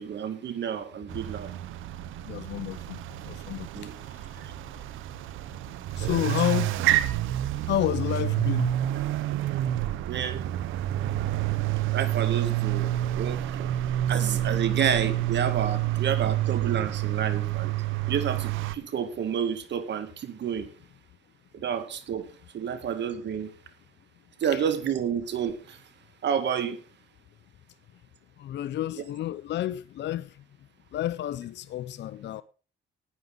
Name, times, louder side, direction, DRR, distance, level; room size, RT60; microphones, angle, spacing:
voice 1, 0.0-1.5 3.7-4.0 6.0-6.2 10.1-10.4 11.9-13.7 14.1-17.7 18.1-20.7 21.5-22.3 22.5-23.5 24.4-25.8 26.2-26.8, right 8 dB, 65° right, 1.8 m, -30 dB
sound 1, 1.1-18.8, right 13 dB, 85° right, 0.7 m, -28 dB
voice 2, 2.2-4.7 5.5-5.6 5.9-6.8 7.6-8.8 13.9-14.0 24.5-24.6 28.4-30.4 30.9-32.4, left 12 dB, 60° left, 0.5 m, -31 dB
16.0 x 9.4 x 3.8 m
cardioid pair, 90°, 20 cm